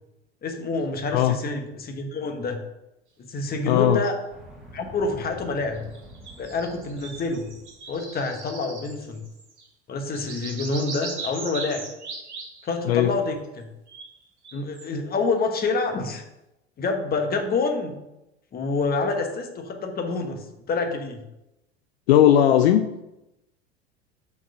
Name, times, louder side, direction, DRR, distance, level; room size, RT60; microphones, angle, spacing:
voice 1, 0.4-2.6 3.2-4.2 4.7-5.9 6.4-7.5 7.9-9.2 9.9-11.9 12.6-13.7 14.5-16.2 16.8-17.9 18.5-21.2, left 3 dB, 30° left, 5 dB, 1.2 m, -27 dB
voice 2, 3.7-4.0 12.9-13.1 22.1-22.9, left 11 dB, 65° left, 8 dB, 0.5 m, -17 dB
sound 1, 4.3-8.2, equal, ahead, 2.5 m, -46 dB
sound 2, 5.7-9.7 10.0-13.0 13.9-14.9, right 3 dB, 80° right, 1.5 m, -39 dB
6.0 x 4.6 x 5.4 m, 0.91 s
figure-of-eight pair, 80°, 34 cm